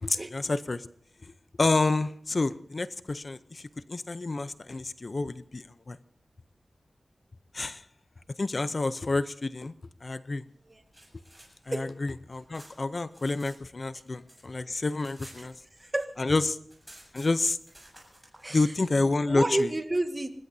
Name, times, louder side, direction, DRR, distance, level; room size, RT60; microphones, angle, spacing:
voice 1, 0.0-0.9 1.6-6.0 7.5-7.8 8.4-9.7 10.0-10.4 11.7-15.5 16.2-16.6 17.1-17.6 18.5-19.7, left 3 dB, 50° left, 14 dB, 0.6 m, -29 dB
sound 1, 10.7-13.6 13.9-16.0 16.3-16.4 16.6-18.4, right 1 dB, 5° right, 7.4 m, -53 dB
voice 2, 15.8-16.2 18.4-18.7 19.3-20.3, right 2 dB, 30° right, 7 dB, 1.5 m, -30 dB
25.5 x 20.0 x 2.7 m, 0.64 s
wide cardioid pair, 70°, 0 cm